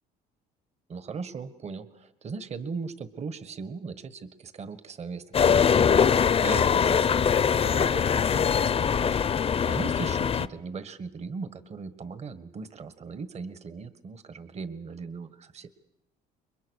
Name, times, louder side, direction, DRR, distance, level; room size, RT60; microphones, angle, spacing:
voice 1, 0.9-15.7, right 5 dB, 40° right, 12 dB, 1.6 m, -39 dB
sound 1, 5.3-10.5, left 7 dB, 35° left, 0.8 m, -22 dB
28.5 x 22.5 x 6.5 m, 0.89 s
cardioid pair, 110°, 17 cm